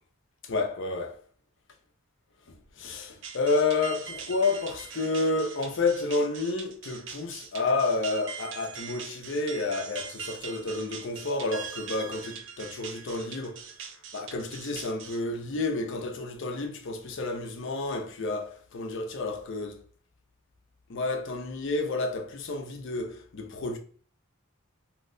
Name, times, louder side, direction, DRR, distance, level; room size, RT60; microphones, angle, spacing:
voice 1, 0.4-1.2 2.8-13.7 14.1-19.8 20.9-23.8, left 3 dB, 55° left, 0.5 m, -30 dB
sound 1, 3.2-15.2, right 6 dB, 55° right, 0.4 m, -42 dB
2.8 x 2.1 x 3.7 m
head